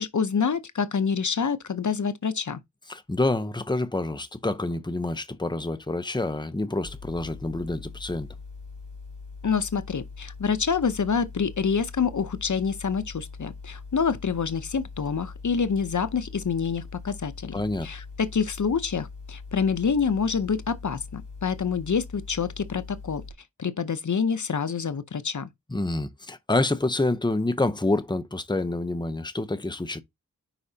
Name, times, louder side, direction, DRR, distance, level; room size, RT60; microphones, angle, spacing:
voice 1, 0.0-2.6 9.4-17.5 17.8-23.2 23.6-25.5, left 6 dB, 70° left, 0.7 m, -27 dB
voice 2, 2.9-8.3 17.5-17.9 25.7-30.0, left 2 dB, 15° left, 0.7 m, -27 dB
sound 1, 6.8-23.3, left 4 dB, 70° right, 4.1 m, -42 dB
9.9 x 4.8 x 2.8 m
wide cardioid pair, 55°, 31 cm